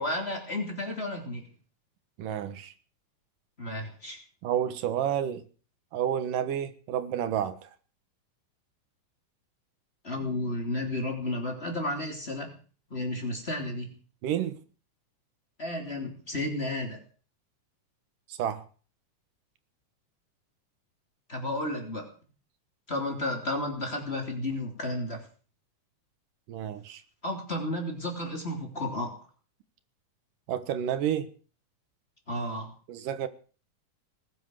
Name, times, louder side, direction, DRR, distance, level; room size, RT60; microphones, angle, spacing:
voice 1, 0.0-1.5 3.6-4.2 10.0-12.5 12.9-13.9 15.6-17.0 21.3-22.1 22.9-25.2 27.2-29.1 32.3-32.7, left 1 dB, 20° left, 3.3 m, -32 dB
voice 2, 2.2-2.7 4.4-5.4 5.9-7.7 14.2-14.6 18.3-18.7 26.5-27.0 30.5-31.3 32.9-33.3, right 10 dB, 90° right, 3.0 m, -30 dB
20.0 x 10.0 x 6.6 m
omnidirectional pair, 3.7 m